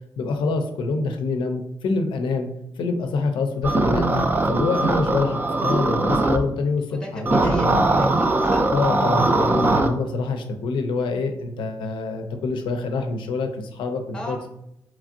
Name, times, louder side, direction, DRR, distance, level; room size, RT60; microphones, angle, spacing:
voice 1, 0.2-2.5 2.8-4.1 4.4-7.7 8.7-14.5, left 3 dB, 85° left, 6 dB, 0.4 m, -26 dB
sound 1, 3.6-6.4 7.3-9.9, right 2 dB, 25° right, 0.3 m, -20 dB
voice 2, 5.1-5.6 6.9-8.7 14.1-14.5, left 1 dB, 10° left, -1 dB, 0.7 m, -36 dB
3.0 x 2.5 x 2.5 m, 0.79 s
cardioid pair, 75°, 8 cm